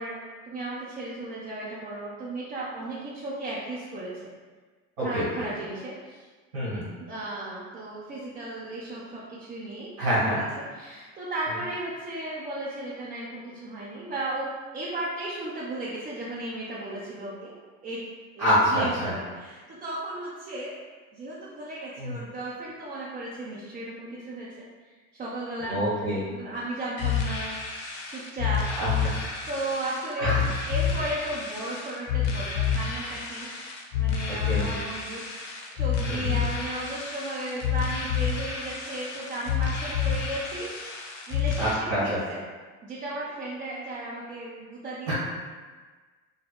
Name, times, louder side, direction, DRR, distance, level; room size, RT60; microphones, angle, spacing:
voice 1, 0.0-4.1 5.0-6.3 7.0-9.9 10.2-17.6 17.8-18.0 18.3-20.8 21.1-24.7 25.1-25.8 26.2-27.6 28.1-28.6 28.9-29.0 29.5-30.4 30.7-33.5 33.9-35.5 35.7-40.9 41.3-42.4 42.8-45.1, right 1 dB, 20° right, -8 dB, 0.4 m, -35 dB
voice 2, 5.0-5.5 6.5-6.9 10.0-10.4 18.4-19.1 22.0-22.2 25.6-26.2 28.7-29.1 30.2-30.4 34.3-34.7 36.0-36.3 41.6-42.2 45.1-45.2, equal, 80° right, -9 dB, 1.4 m, -26 dB
sound 1, 27.0-41.7, left 7 dB, 65° left, 0.6 m, -29 dB
3.7 x 2.0 x 2.2 m, 1.4 s
figure-of-eight pair, 70°, 40 cm